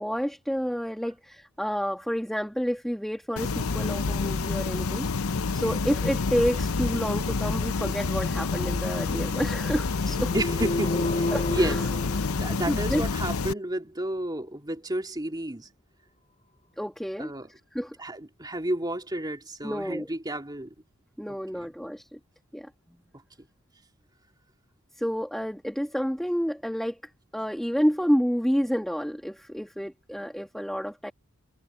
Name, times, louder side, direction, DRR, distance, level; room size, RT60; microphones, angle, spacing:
voice 1, 0.0-10.3 11.3-11.8 12.7-13.1 16.8-17.3 17.7-17.9 19.6-20.1 21.2-22.2 22.5-22.7 25.0-31.1, equal, ahead, 1.8 m, -29 dB
sound 1, 3.4-13.5, left 4 dB, 90° left, 0.8 m, -28 dB
sound 2, 10.3-13.0, left 1 dB, 30° left, 3.9 m, -31 dB
voice 2, 10.3-11.8 12.3-15.7 17.2-17.5 18.0-20.7 21.5-21.7, right 1 dB, 20° right, 2.8 m, -31 dB
head